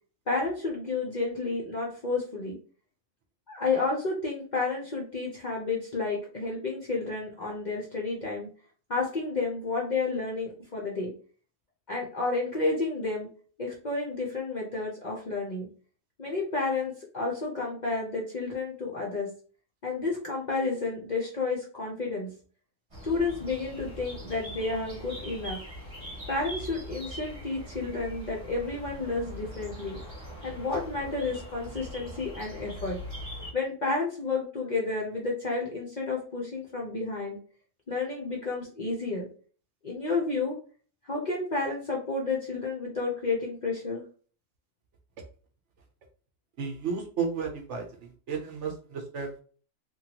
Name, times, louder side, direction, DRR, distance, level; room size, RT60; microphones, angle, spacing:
voice 1, 0.3-2.6 3.5-8.5 8.9-11.1 11.9-13.3 13.6-15.7 16.2-19.3 19.8-22.4 23.0-25.6 26.3-30.0 30.4-33.0 33.5-37.4 37.9-39.3 39.8-40.6 41.0-44.0, left 3 dB, 50° left, -2 dB, 0.5 m, -31 dB
sound 1, 22.9-33.5, equal, 25° right, 0.9 m, -42 dB
voice 2, 46.6-49.4, right 5 dB, 65° right, 3 dB, 0.9 m, -33 dB
3.0 x 2.2 x 2.8 m, 0.42 s
omnidirectional pair, 1.4 m